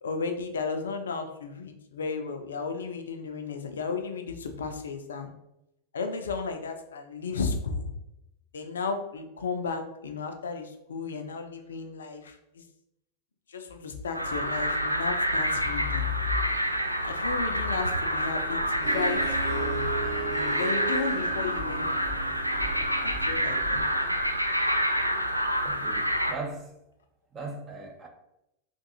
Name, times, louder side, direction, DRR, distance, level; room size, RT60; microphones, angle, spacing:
voice 1, 0.0-5.3 5.9-7.9 8.5-12.6 13.5-16.1 17.0-19.9 20.3-21.9 23.0-24.1, left 4 dB, 65° left, 0.4 m, -34 dB
sound 1, 14.1-26.3, equal, 90° right, 0.3 m, -28 dB
sound 2, 15.4-16.8 17.4-24.3, left 6 dB, 20° left, 0.6 m, -38 dB
Harp, 18.8-24.0, right 7 dB, 55° right, 1.3 m, -37 dB
voice 2, 25.6-26.7 27.3-28.1, right 3 dB, 25° right, 0.6 m, -38 dB
3.5 x 2.5 x 2.8 m
figure-of-eight pair, 90°, 0 cm